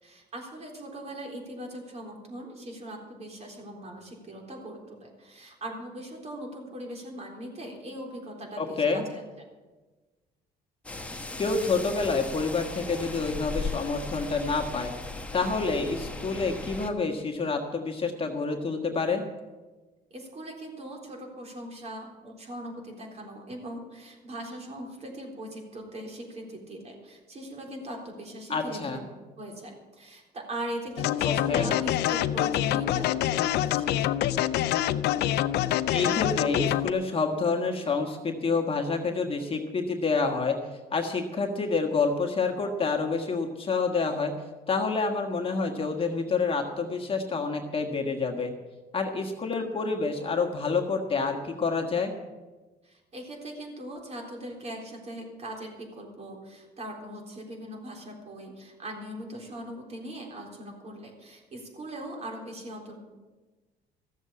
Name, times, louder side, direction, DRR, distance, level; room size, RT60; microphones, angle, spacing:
voice 1, 0.0-9.5 20.1-29.1 29.4-34.2 52.8-63.0, right 1 dB, 40° right, 1 dB, 3.7 m, -40 dB
voice 2, 8.6-9.0 11.4-14.9 15.3-19.2 28.5-29.0 31.2-31.7 35.9-40.6 40.9-44.3 44.7-48.5 48.9-52.1, left 4 dB, 35° left, 2 dB, 1.5 m, -28 dB
sound 1, 10.8-16.9, left 2 dB, 10° left, 1.2 m, -37 dB
sound 2, 31.0-36.9, left 12 dB, 75° left, 0.5 m, -26 dB
14.5 x 7.4 x 8.4 m, 1.2 s
cardioid pair, 110°, 17 cm